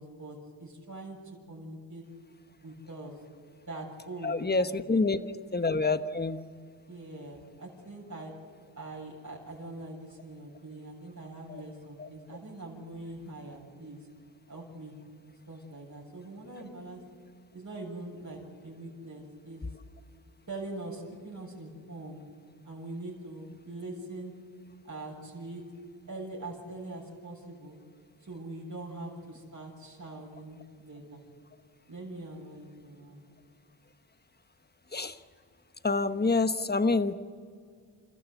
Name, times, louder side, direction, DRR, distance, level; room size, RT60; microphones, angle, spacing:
voice 1, 0.0-2.0 2.6-3.1 3.7-4.7 4.9-5.1 6.9-8.3 8.8-14.0 14.5-14.9 15.5-17.0 17.5-19.6 20.5-22.2 22.6-24.3 24.8-25.6 26.1-27.8 28.2-31.2 31.9-33.2, right 2 dB, 40° right, -3 dB, 6.9 m, -43 dB
voice 2, 4.2-5.2 5.5-6.4 11.5-11.6 12.0-12.1 34.9-35.2 35.8-37.1, left 3 dB, 20° left, 11 dB, 1.2 m, -27 dB
29.0 x 14.0 x 8.1 m, 2.1 s
cardioid pair, 55°, 46 cm